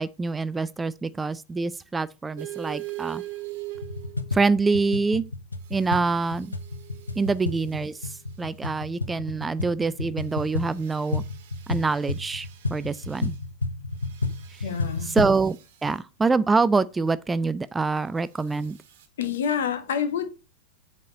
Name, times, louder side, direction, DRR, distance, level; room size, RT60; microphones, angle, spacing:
voice 1, 0.0-3.2 4.3-5.3 5.7-6.5 7.2-11.2 11.7-13.3 14.5-14.6 15.0-18.8, right 4 dB, 10° right, 0.3 m, -25 dB
sound 1, 2.4-4.5 5.6-8.1 10.2-13.4 14.0-15.9 18.3-19.1, right 18 dB, 55° right, 1.3 m, -42 dB
sound 2, 3.7-15.4, left 3 dB, 80° left, 0.7 m, -32 dB
voice 2, 14.6-15.1 19.2-20.3, left 7 dB, 60° left, 1.3 m, -27 dB
7.5 x 4.3 x 5.1 m
figure-of-eight pair, 90°, 0 cm